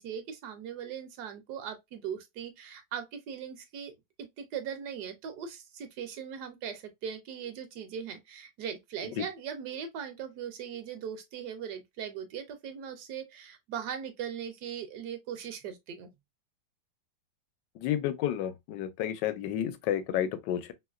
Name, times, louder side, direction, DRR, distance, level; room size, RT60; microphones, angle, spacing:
voice 1, 0.0-3.9 4.4-16.1, right 8 dB, 75° right, 1.0 m, -39 dB
voice 2, 17.8-20.7, left 11 dB, 80° left, 1.2 m, -31 dB
3.1 x 2.8 x 2.3 m
omnidirectional pair, 1.9 m